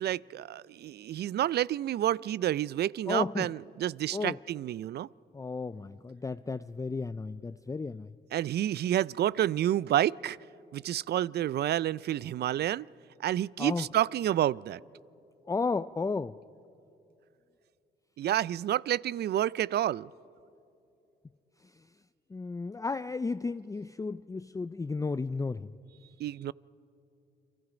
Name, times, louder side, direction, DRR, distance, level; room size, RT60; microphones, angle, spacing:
voice 1, 0.0-5.1 8.3-10.4 10.7-12.9 13.2-14.8 18.2-20.1 26.2-26.5, right 12 dB, 60° right, 0.4 m, -29 dB
voice 2, 3.1-3.5 4.1-4.4 5.3-8.1 13.6-13.8 15.5-16.4 22.3-25.7, left 4 dB, 15° left, 0.4 m, -33 dB
29.5 x 23.0 x 5.1 m
supercardioid pair, 60°, 19 cm